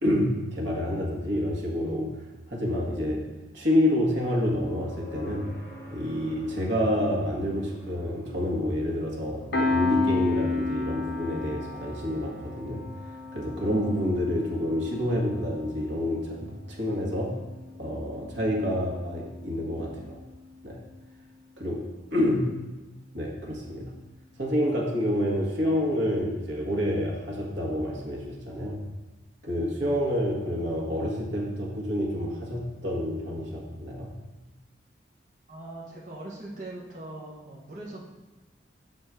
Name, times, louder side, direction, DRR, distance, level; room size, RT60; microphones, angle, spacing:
voice 1, 0.0-2.2 2.5-3.3 3.5-5.5 5.9-12.8 13.3-17.4 17.8-20.2 20.6-20.8 21.6-22.5 23.1-23.9 24.4-28.8 29.4-34.1, equal, 80° right, -1 dB, 1.6 m, -28 dB
sound 1, 4.6-18.5 20.7-20.8, equal, 15° left, 1.7 m, -49 dB
Piano, 9.5-20.6, left 3 dB, 60° left, 0.9 m, -33 dB
voice 2, 35.5-38.0, right 2 dB, 45° right, -4 dB, 1.1 m, -41 dB
6.6 x 4.1 x 6.3 m, 1.1 s
head